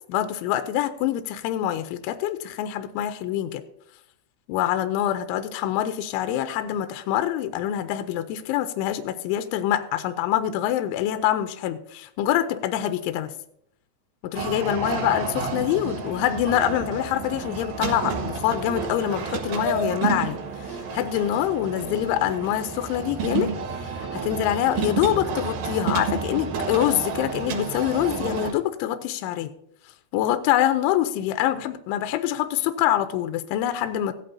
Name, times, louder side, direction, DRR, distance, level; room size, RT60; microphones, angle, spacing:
voice 1, 0.1-3.6 4.5-13.3 14.2-23.5 23.9-29.5 30.1-34.1, left 12 dB, 85° left, 10 dB, 2.8 m, -25 dB
sound 1, 14.3-28.5, right 5 dB, 60° right, 2.8 m, -30 dB
16.0 x 11.0 x 2.7 m, 0.73 s
omnidirectional pair, 5.9 m